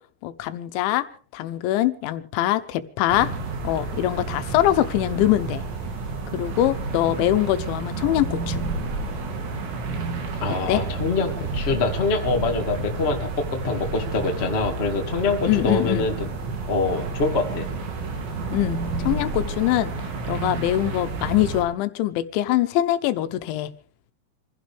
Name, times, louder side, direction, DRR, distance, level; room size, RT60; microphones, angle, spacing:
voice 1, 0.2-1.1 1.3-3.3 3.6-5.6 6.3-8.6 10.7-10.8 15.5-16.1 18.5-19.9 20.3-23.7, left 14 dB, 85° left, 3.3 m, -23 dB
sound 1, 3.1-21.6, right 3 dB, 75° right, 5.0 m, -30 dB
voice 2, 10.4-16.3 16.7-17.7, left 3 dB, 40° left, 0.8 m, -25 dB
26.0 x 16.0 x 3.4 m
omnidirectional pair, 5.2 m